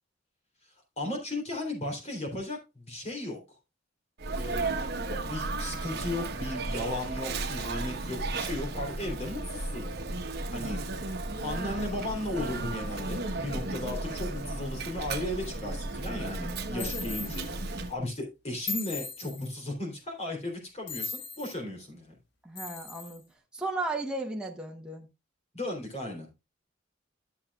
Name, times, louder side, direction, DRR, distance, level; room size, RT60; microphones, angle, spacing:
voice 1, 1.0-3.4 4.3-9.9 10.5-10.8 11.4-22.1 25.5-26.3, left 1 dB, 35° left, 3.2 m, -36 dB
Sneeze, 4.2-18.0, right 2 dB, 55° right, 1.1 m, -34 dB
sound 1, 16.8-17.5 18.7-19.5 20.9-21.6 22.6-23.2, left 4 dB, 65° left, 1.4 m, -38 dB
voice 2, 22.4-23.3 23.5-25.1, right 2 dB, 5° right, 1.1 m, -35 dB
12.5 x 7.0 x 2.4 m
head